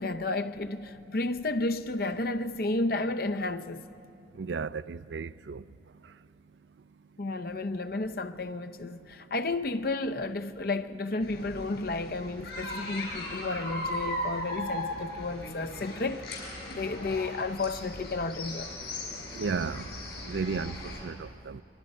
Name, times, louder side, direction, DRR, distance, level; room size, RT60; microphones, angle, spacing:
voice 1, 0.0-3.8 7.2-16.3 16.7-18.7, left 2 dB, 55° left, 0.7 m, -32 dB
voice 2, 4.4-5.6 19.3-19.9 20.3-21.6, right 5 dB, 80° right, 0.4 m, -34 dB
sound 1, 11.2-21.0, left 1 dB, 70° left, 6.5 m, -38 dB
25.0 x 22.0 x 5.4 m
head